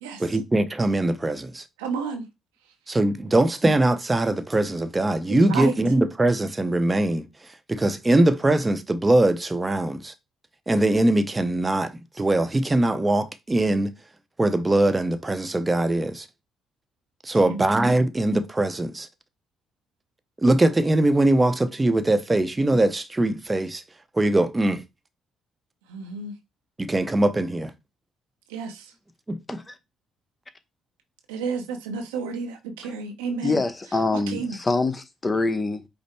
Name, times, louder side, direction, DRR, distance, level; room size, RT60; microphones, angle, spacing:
voice 1, 0.2-1.6 2.9-7.2 7.7-10.1 10.7-13.9 14.4-16.3 17.2-19.1 20.4-23.8 24.1-24.8 26.8-27.7 29.3-29.6, right 1 dB, 25° right, 0.7 m, -22 dB
voice 2, 1.8-2.3 5.3-5.8 17.5-17.6 25.9-26.3 28.5-28.9 31.3-33.6 34.1-34.6 35.3-35.4, right 5 dB, 90° right, 0.7 m, -31 dB
voice 3, 33.4-35.9, left 3 dB, 30° left, 0.8 m, -25 dB
5.1 x 2.1 x 4.4 m
hypercardioid pair, 50°, 0 cm